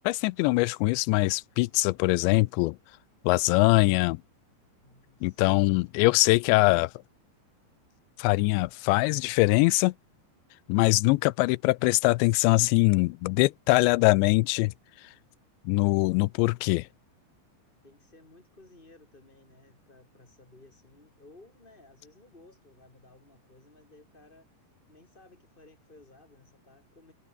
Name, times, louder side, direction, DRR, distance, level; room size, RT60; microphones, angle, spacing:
voice 1, 0.1-2.8 3.2-4.2 5.2-6.9 8.2-9.9 10.7-14.7 15.7-16.9, left 23 dB, 85° left, 2.8 m, -23 dB
voice 2, 4.8-5.6 17.8-27.1, left 2 dB, 15° left, 2.4 m, -57 dB
omnidirectional pair, 5.2 m